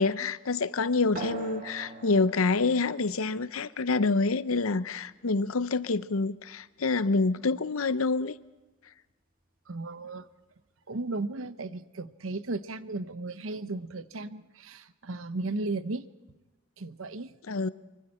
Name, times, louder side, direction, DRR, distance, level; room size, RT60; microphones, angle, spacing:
voice 1, 0.0-8.3 17.5-17.7, left 3 dB, 85° left, 15 dB, 0.7 m, -27 dB
sound 1, 1.1-6.2, right 2 dB, 45° right, 1.8 m, -44 dB
voice 2, 9.7-10.3 10.9-16.1 16.8-17.3, right 2 dB, 70° right, 13 dB, 0.9 m, -35 dB
25.0 x 24.0 x 4.3 m, 1.1 s
head